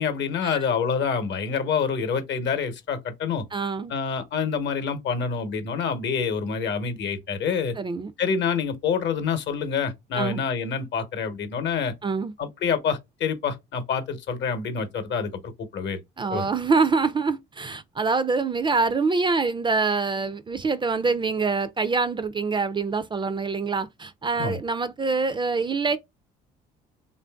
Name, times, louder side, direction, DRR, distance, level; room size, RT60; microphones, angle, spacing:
voice 1, 0.0-3.4 3.9-7.8 8.2-11.9 12.4-16.0 16.3-16.4 24.4-24.6, left 6 dB, 55° left, 0.9 m, -27 dB
voice 2, 3.5-3.9 7.8-8.1 10.1-10.4 12.0-12.3 16.2-26.0, right 4 dB, 25° right, 0.4 m, -25 dB
3.2 x 2.6 x 2.2 m
supercardioid pair, 70°, 21 cm